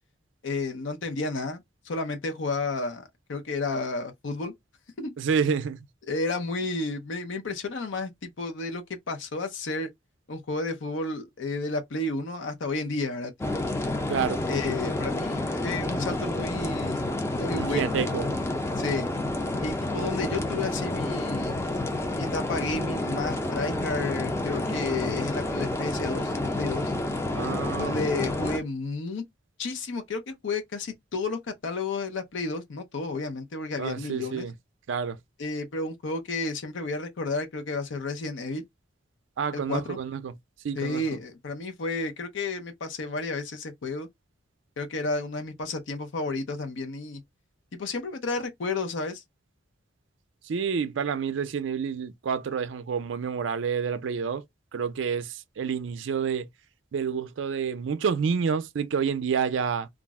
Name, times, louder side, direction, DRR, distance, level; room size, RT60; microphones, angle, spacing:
voice 1, 0.4-1.6 1.9-4.5 5.0-5.1 6.1-9.9 10.3-13.7 14.5-17.0 17.3-17.9 18.8-19.1 19.6-21.6 22.1-26.9 27.8-29.2 29.6-34.5 35.4-38.6 39.5-40.0 40.8-44.1 44.8-47.2 47.7-49.2, left 3 dB, 80° left, 0.6 m, -32 dB
voice 2, 5.2-5.9 14.1-14.4 17.6-18.3 27.3-28.0 33.8-34.5 34.9-35.2 39.4-40.3 40.6-41.0 50.5-54.4 54.7-56.5 56.9-59.9, right 6 dB, 80° right, 0.4 m, -28 dB
sound 1, 13.4-28.6, left 1 dB, 15° left, 0.4 m, -29 dB
2.4 x 2.0 x 3.4 m
head